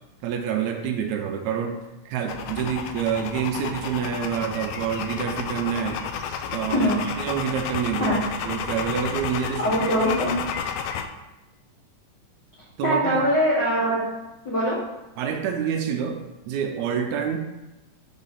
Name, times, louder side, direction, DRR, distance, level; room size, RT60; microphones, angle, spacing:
voice 1, 0.2-1.8 2.1-6.0 6.5-8.2 8.4-9.8 12.8-13.3 15.2-16.2 16.5-17.4, right 8 dB, 80° right, 4 dB, 1.9 m, -27 dB
sound 1, 2.3-11.1, left 7 dB, 80° left, 1.8 m, -31 dB
voice 2, 9.6-10.3 12.8-14.0 14.4-14.8, equal, 60° left, -7 dB, 1.1 m, -22 dB
5.3 x 3.9 x 5.6 m, 0.98 s
omnidirectional pair, 3.5 m